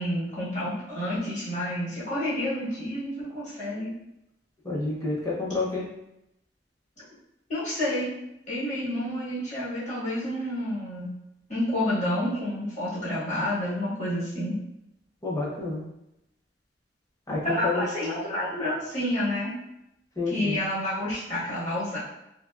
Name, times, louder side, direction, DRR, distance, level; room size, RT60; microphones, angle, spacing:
voice 1, 0.0-3.9 7.5-8.1 8.5-11.2 11.5-14.6 17.4-19.5 20.3-22.0, left 1 dB, 45° left, -10 dB, 1.4 m, -29 dB
voice 2, 4.6-5.8 15.2-15.8 17.3-17.8 20.2-20.6, left 3 dB, 20° left, -5 dB, 0.7 m, -29 dB
2.7 x 2.6 x 2.4 m, 0.84 s
head